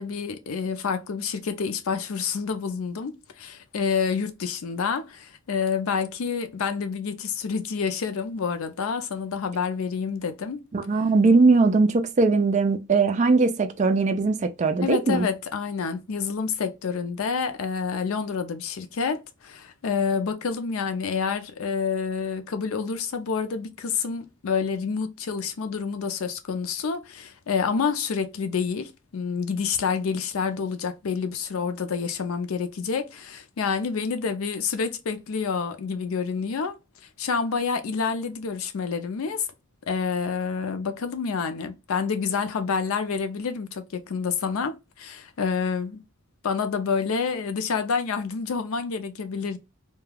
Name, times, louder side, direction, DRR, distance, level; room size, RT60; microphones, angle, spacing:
voice 1, 0.0-10.6 14.8-36.8 37.2-39.5 39.9-46.0 46.4-49.6, left 5 dB, 85° left, 0.5 m, -28 dB
voice 2, 10.7-15.3, right 3 dB, 35° right, 0.4 m, -20 dB
2.3 x 2.2 x 3.2 m
head